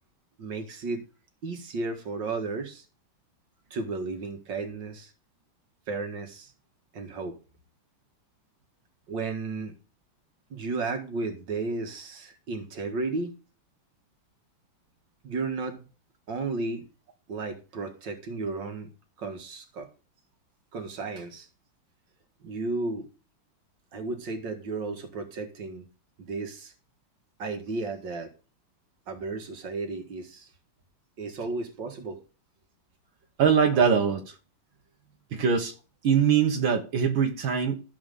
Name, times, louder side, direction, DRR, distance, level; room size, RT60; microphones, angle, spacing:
voice 1, 0.4-1.0 1.4-2.8 3.7-5.1 5.9-6.5 6.9-7.4 9.1-9.8 10.5-13.3 15.2-15.9 16.3-16.8 17.3-18.9 19.2-19.9 20.7-21.5 22.4-23.1 23.9-25.9 26.2-26.7 27.4-28.3 29.1-30.5 31.2-32.2, right 3 dB, 70° right, 2.5 m, -33 dB
voice 2, 33.4-34.2 35.3-35.7 36.0-37.8, right 7 dB, 85° right, 2.3 m, -22 dB
15.0 x 5.0 x 7.0 m
omnidirectional pair, 2.1 m